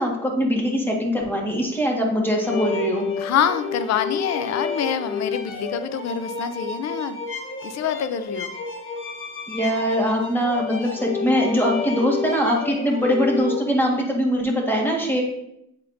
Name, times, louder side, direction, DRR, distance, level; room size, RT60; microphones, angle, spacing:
voice 1, 0.0-3.1 9.5-15.2, equal, 5° left, -1 dB, 1.7 m, -22 dB
sound 1, 2.4-13.7, left 4 dB, 40° left, 1.0 m, -31 dB
voice 2, 3.2-7.2 7.6-8.5, left 8 dB, 60° left, 11 dB, 0.6 m, -26 dB
8.0 x 4.3 x 2.7 m, 0.77 s
cardioid pair, 80°, 30 cm